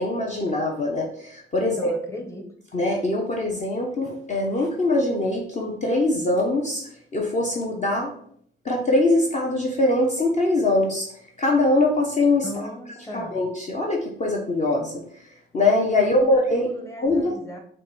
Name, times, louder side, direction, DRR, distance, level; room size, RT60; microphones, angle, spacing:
voice 1, 0.0-1.9 2.7-6.8 7.1-8.1 8.6-11.1 11.4-12.5 13.1-15.0 15.5-16.7 17.0-17.4, left 2 dB, 35° left, 0 dB, 0.7 m, -22 dB
voice 2, 1.6-2.4 12.4-13.4 16.0-17.6, equal, 15° left, 2 dB, 1.0 m, -37 dB
5.1 x 2.2 x 3.9 m, 0.64 s
cardioid pair, 90°, 20 cm